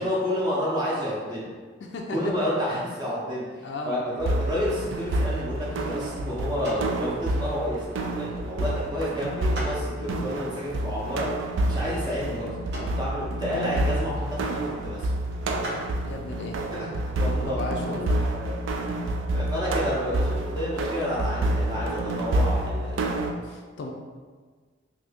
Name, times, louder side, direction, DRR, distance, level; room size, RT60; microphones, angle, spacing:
voice 1, 0.0-1.5 2.1-15.1 16.7-16.9 17.2-17.8 18.3-18.5 19.3-23.0, equal, 20° right, -7 dB, 0.6 m, -30 dB
voice 2, 1.8-2.2 3.6-4.0 16.0-16.6 17.5-18.2 23.4-23.9, left 2 dB, 65° left, 1 dB, 0.3 m, -35 dB
sound 1, 4.2-23.3, right 1 dB, 85° right, 0.3 m, -28 dB
sound 2, 4.9-17.5, equal, 60° right, 0.7 m, -44 dB
2.7 x 2.6 x 3.4 m, 1.5 s
head